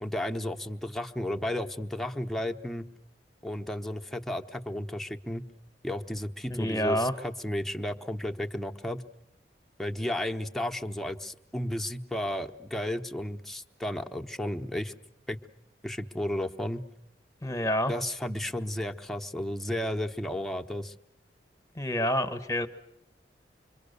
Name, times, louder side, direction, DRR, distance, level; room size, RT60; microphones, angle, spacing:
voice 1, 0.0-2.9 3.4-5.4 5.8-9.0 9.8-14.9 15.3-15.4 15.8-16.8 17.9-20.9, left 1 dB, ahead, 3 dB, 0.9 m, -33 dB
voice 2, 6.5-7.1 17.4-17.9 21.7-22.7, equal, 20° left, 10 dB, 1.2 m, -28 dB
26.0 x 23.5 x 6.8 m, 0.83 s
head